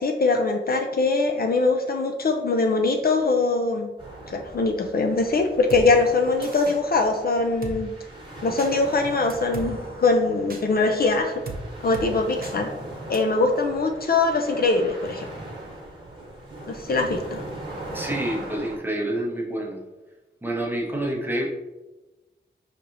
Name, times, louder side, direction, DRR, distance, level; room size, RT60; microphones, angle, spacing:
voice 1, 0.0-3.9 4.3-7.9 8.4-11.4 11.8-12.7 13.1-15.3 16.7-17.4, left 3 dB, 55° left, 4 dB, 0.4 m, -22 dB
sound 1, 4.0-18.8, right 1 dB, 25° right, 1.2 m, -39 dB
Drum kit, 5.7-5.8 6.4-6.8 7.6-7.8 8.6-8.7 9.3-9.7 10.5-10.6 11.5-11.6 11.9-12.1 12.4-12.5 13.1-13.2, right 4 dB, 50° right, 0.5 m, -35 dB
voice 2, 17.9-19.8 20.4-21.5, right 1 dB, 10° right, -1 dB, 0.8 m, -28 dB
4.6 x 2.9 x 2.5 m, 1.1 s
wide cardioid pair, 75°, 19 cm